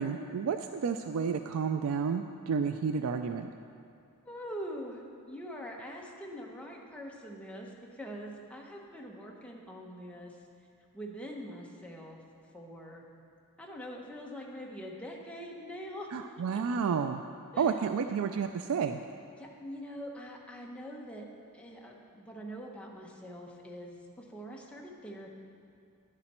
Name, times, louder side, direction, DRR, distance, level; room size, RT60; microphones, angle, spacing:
voice 1, 0.0-3.5 16.1-17.2 17.6-19.0, right 6 dB, 70° right, 8 dB, 0.4 m, -31 dB
voice 2, 4.2-10.3 10.9-12.2 12.5-13.0 13.6-16.3 16.5-16.8 17.5-17.7 19.4-21.3 21.5-25.3, equal, 5° left, -1 dB, 1.1 m, -44 dB
11.0 x 10.0 x 4.3 m, 2.4 s
head